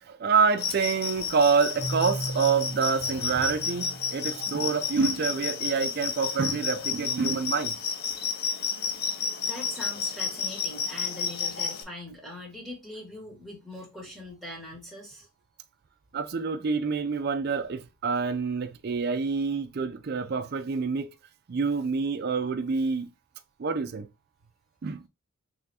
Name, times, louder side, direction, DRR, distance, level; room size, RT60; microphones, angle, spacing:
voice 1, 0.0-7.9 16.1-21.1 21.5-23.1 23.6-24.1 24.8-25.0, right 5 dB, 45° right, 0.4 m, -27 dB
sound 1, 0.6-11.8, left 6 dB, 45° left, 0.5 m, -31 dB
Keyboard (musical), 1.8-5.5, right 1 dB, 65° left, 1.2 m, -37 dB
voice 2, 9.2-15.3, left 1 dB, ahead, 1.3 m, -42 dB
3.7 x 3.3 x 2.7 m
head